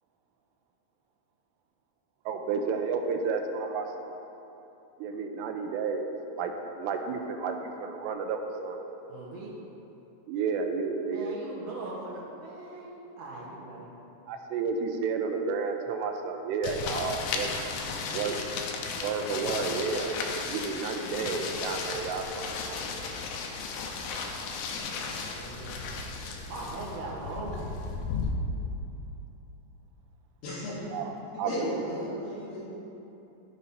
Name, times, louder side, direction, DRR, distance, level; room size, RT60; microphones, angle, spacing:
voice 1, 2.3-4.2 5.0-6.1 6.4-8.8 10.3-11.3 14.3-17.5 18.1-18.4 19.0-20.2 20.5-23.2 30.9-31.0 31.4-31.9, right 5 dB, 85° right, 4 dB, 2.7 m, -31 dB
voice 2, 9.1-9.6 11.1-13.9 25.0-25.8 26.5-27.7, right 2 dB, 65° right, -5 dB, 2.4 m, -40 dB
sound 1, 16.6-28.3, left 5 dB, 85° left, 2.1 m, -35 dB
voice 3, 30.4-31.0 31.3-32.7, left 1 dB, 70° left, -8 dB, 3.3 m, -35 dB
15.0 x 5.1 x 2.8 m, 2.9 s
omnidirectional pair, 5.0 m